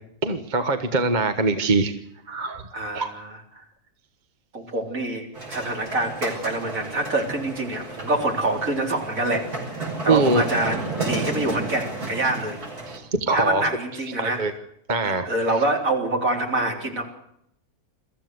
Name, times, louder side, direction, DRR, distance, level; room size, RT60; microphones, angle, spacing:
voice 1, 0.2-1.9 2.3-2.6 2.9-3.1 10.1-10.4 12.9-13.6 14.2-14.5 14.9-15.3, right 3 dB, 30° right, 8 dB, 1.4 m, -23 dB
voice 2, 2.7-3.6 4.5-9.5 9.7-12.6 13.3-14.4 15.0-17.0, right 2 dB, 60° right, 2 dB, 4.0 m, -26 dB
sound 1, 5.3-13.0, right 3 dB, 85° right, 6.8 m, -32 dB
23.0 x 14.5 x 7.9 m, 0.74 s
omnidirectional pair, 1.6 m